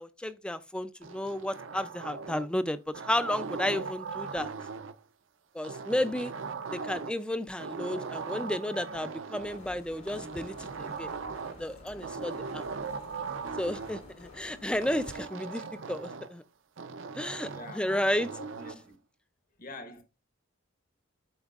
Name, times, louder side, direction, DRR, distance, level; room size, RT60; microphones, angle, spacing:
voice 1, 0.0-2.8 3.1-4.5 5.5-6.3 6.7-11.1 11.6-12.6 13.6-15.6 15.9-16.4 17.2-18.3, left 1 dB, 5° left, 0.4 m, -32 dB
sound 1, 1.0-2.6 2.9-5.0 5.6-7.3 7.6-9.6 10.1-11.7 12.0-14.0 14.8-16.4 16.8-18.8, right 5 dB, 60° right, 0.6 m, -39 dB
sound 2, 9.4-15.2, left 2 dB, 70° left, 1.9 m, -51 dB
voice 2, 17.5-18.0 18.4-19.0 19.6-20.0, left 2 dB, 45° left, 1.1 m, -45 dB
12.0 x 4.4 x 2.4 m
head